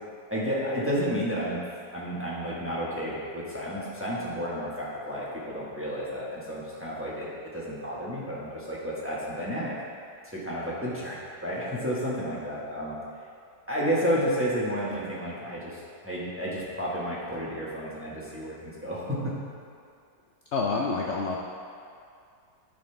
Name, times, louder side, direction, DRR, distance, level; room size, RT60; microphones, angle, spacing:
voice 1, 0.3-1.6 1.9-9.8 10.2-12.9 13.7-19.4, equal, 10° right, -8 dB, 1.2 m, -31 dB
voice 2, 20.5-21.4, left 3 dB, 80° left, -2 dB, 0.6 m, -27 dB
12.5 x 4.3 x 3.3 m, 2.4 s
omnidirectional pair, 1.9 m